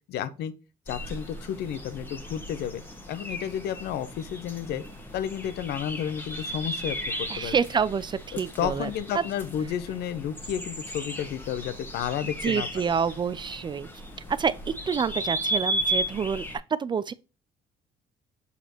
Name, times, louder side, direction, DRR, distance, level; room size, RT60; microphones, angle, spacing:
voice 1, 0.1-0.5 0.9-2.8 3.1-4.8 5.1-7.6 8.6-12.7, left 9 dB, 75° left, 0.7 m, -31 dB
sound 1, 0.9-16.6, right 1 dB, 10° left, 1.6 m, -35 dB
voice 2, 7.3-9.2 12.4-13.9 14.3-16.4 16.8-17.1, right 6 dB, 25° right, 0.3 m, -28 dB
6.8 x 5.0 x 2.9 m
cardioid pair, 110°, 17 cm